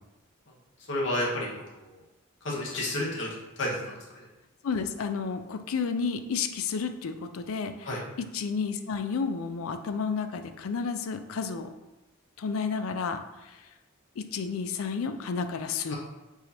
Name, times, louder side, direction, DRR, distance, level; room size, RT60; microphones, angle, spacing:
voice 1, 0.9-2.0 2.4-3.3 3.6-4.3 7.8-8.0 15.9-16.0, left 1 dB, 60° left, -4 dB, 1.2 m, -31 dB
voice 2, 4.6-7.9 8.2-11.7 12.4-13.2 14.2-15.9, left 5 dB, 80° left, 8 dB, 0.4 m, -31 dB
4.8 x 2.6 x 4.3 m, 1.0 s
head